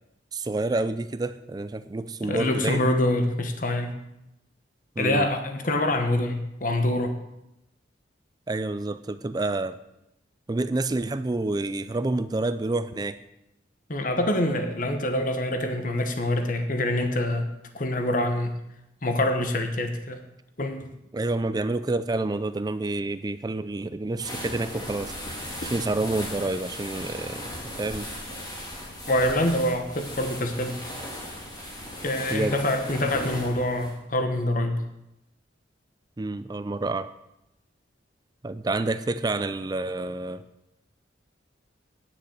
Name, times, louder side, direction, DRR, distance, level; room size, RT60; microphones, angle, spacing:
voice 1, 0.3-2.9 5.0-5.3 8.5-9.8 10.5-13.2 21.1-25.2 25.6-27.5 27.8-28.1 32.3-32.6 36.2-37.1 38.4-40.4, right 2 dB, 20° right, 13 dB, 0.3 m, -28 dB
voice 2, 2.2-4.0 5.0-7.2 13.9-17.5 17.7-18.5 19.0-20.2 20.6-20.9 25.6-25.7 29.1-30.9 32.0-34.8, left 1 dB, 45° left, 6 dB, 1.1 m, -25 dB
sound 1, 24.1-33.9, left 1 dB, 20° left, 2.3 m, -37 dB
10.0 x 6.7 x 7.2 m, 0.87 s
head